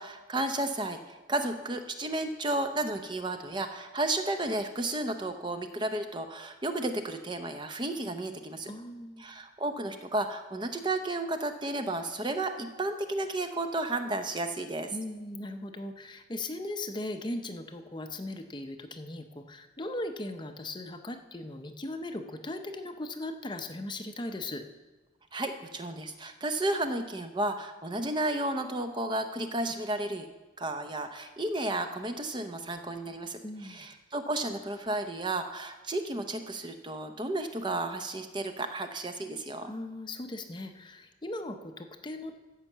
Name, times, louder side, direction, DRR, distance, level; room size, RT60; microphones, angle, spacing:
voice 1, 0.0-8.7 9.2-14.9 25.3-30.3 30.6-39.7, right 2 dB, 25° right, 7 dB, 0.6 m, -33 dB
voice 2, 8.7-9.2 14.9-24.6 33.4-33.9 39.6-42.4, left 1 dB, 25° left, 6 dB, 0.6 m, -38 dB
14.0 x 5.7 x 7.3 m, 1.2 s
head